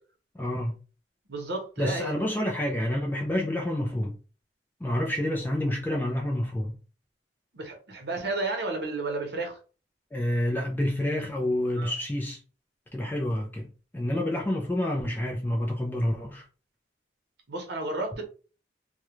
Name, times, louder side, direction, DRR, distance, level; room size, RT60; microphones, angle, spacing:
voice 1, 0.3-0.7 1.8-4.2 4.8-6.7 10.1-12.4 12.9-16.5, left 1 dB, 10° left, 0.3 m, -28 dB
voice 2, 1.3-2.1 7.5-9.6 11.7-11.9 17.5-18.2, right 2 dB, 70° right, 0.8 m, -32 dB
2.3 x 2.1 x 3.0 m
head